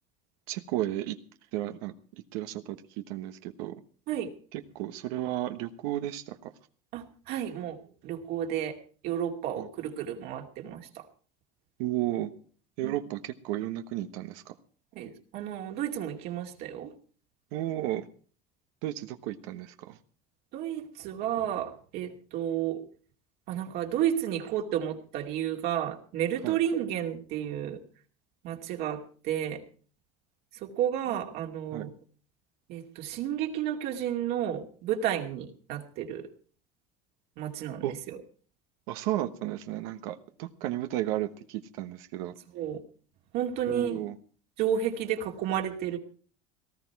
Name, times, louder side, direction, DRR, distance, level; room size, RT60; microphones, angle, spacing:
voice 1, 0.5-1.2 1.5-1.9 2.3-3.7 4.5-6.5 9.6-9.7 11.8-12.3 12.8-14.5 17.5-18.1 18.8-20.0 26.4-26.6 31.7-31.9 37.8-37.9 38.9-42.4 43.7-44.2, right 14 dB, 80° right, 8 dB, 1.2 m, -33 dB
voice 2, 6.9-8.8 9.0-11.0 12.8-12.9 15.0-16.9 20.5-22.8 23.5-27.8 28.4-29.6 30.6-31.9 32.7-36.3 37.4-38.2 42.5-42.8 43.3-44.0 44.6-46.0, right 10 dB, 65° right, 2 dB, 2.5 m, -32 dB
18.5 x 13.0 x 4.7 m, 0.42 s
supercardioid pair, 120°, 18 cm